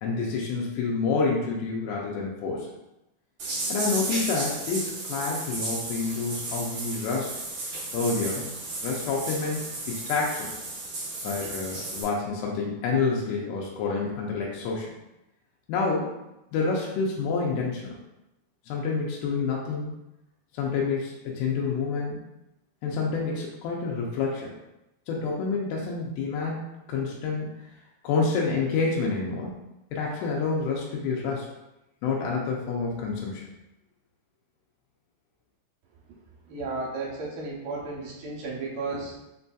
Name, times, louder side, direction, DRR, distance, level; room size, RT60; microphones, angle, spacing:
voice 1, 0.0-2.7 3.7-7.3 7.9-8.5 8.8-9.6 9.9-10.5 11.2-14.9 15.7-16.1 16.5-17.9 18.7-19.9 20.6-22.2 22.8-24.5 25.1-26.6 26.9-27.5 28.0-29.7 29.9-31.5 32.0-33.4, left 4 dB, 90° left, -3 dB, 2.6 m, -28 dB
sound 1, 3.4-12.0, right 2 dB, 50° right, 2.1 m, -34 dB
voice 2, 36.5-39.3, right 3 dB, 75° right, -4 dB, 2.4 m, -34 dB
5.8 x 2.6 x 2.3 m, 0.92 s
omnidirectional pair, 4.5 m